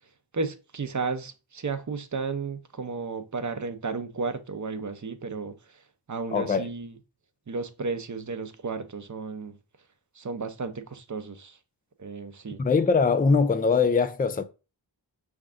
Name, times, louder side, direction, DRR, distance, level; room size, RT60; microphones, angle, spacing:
voice 1, 0.3-5.5 6.1-7.0 7.5-9.6 10.2-11.6 12.0-12.6, right 4 dB, 40° right, 0.7 m, -33 dB
voice 2, 6.3-6.7 12.6-14.4, left 5 dB, 20° left, 0.4 m, -22 dB
5.7 x 3.5 x 2.5 m
wide cardioid pair, 60°, 48 cm